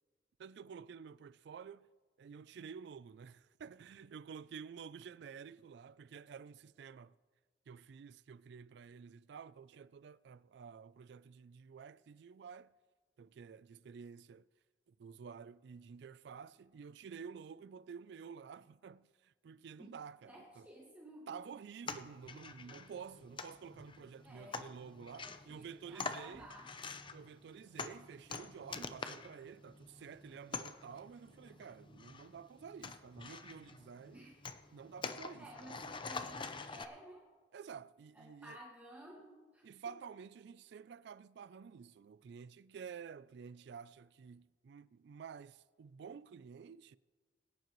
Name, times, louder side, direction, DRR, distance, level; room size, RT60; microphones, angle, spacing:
voice 1, 0.4-1.9 2.2-7.2 7.7-12.7 13.2-14.5 15.0-20.7 21.3-26.5 27.1-34.3 34.7-35.8 37.5-38.6 39.6-47.0, right 6 dB, 65° right, 0.3 m, -51 dB
voice 2, 20.3-21.3 24.2-26.7 34.1-34.3 35.4-37.3 38.1-40.0, right 1 dB, 10° right, 1.8 m, -55 dB
sound 1, 21.8-36.8, left 4 dB, 25° left, 0.6 m, -47 dB
21.5 x 10.5 x 3.1 m
head